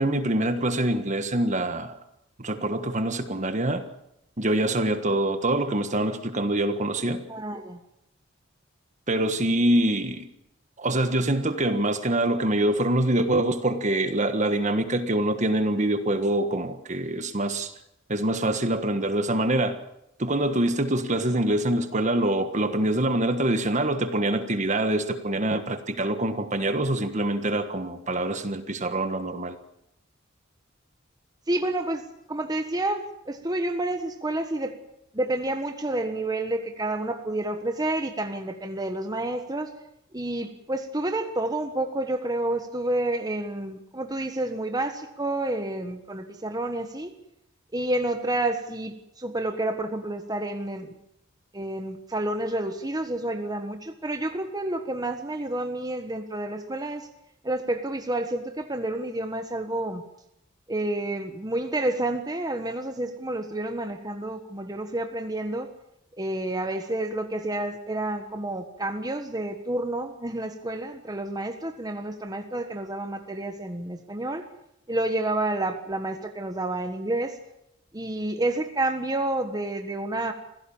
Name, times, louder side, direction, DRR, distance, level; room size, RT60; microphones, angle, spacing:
voice 1, 0.0-1.9 2.4-3.9 4.4-7.2 9.1-10.3 10.8-17.7 18.1-19.8 20.2-29.6, right 1 dB, 35° right, 9 dB, 1.5 m, -25 dB
voice 2, 7.3-7.8 31.5-34.8 35.1-39.7 40.1-47.1 47.7-50.9 51.5-57.1 57.4-60.0 60.7-65.7 66.1-74.5 74.9-77.4 77.9-80.3, right 1 dB, 20° right, 6 dB, 1.4 m, -29 dB
26.0 x 16.5 x 7.2 m, 0.81 s
head